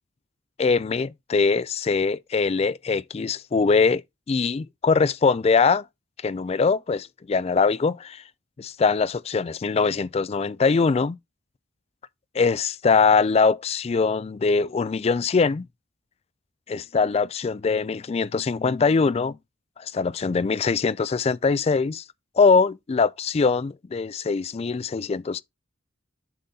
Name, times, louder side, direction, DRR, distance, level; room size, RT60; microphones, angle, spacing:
voice 1, 0.6-4.0 4.3-5.8 6.2-8.2 8.6-11.2 12.3-15.6 16.7-19.4 19.8-22.0 22.4-25.4, left 4 dB, 30° left, 0.3 m, -22 dB
7.7 x 3.9 x 4.1 m
head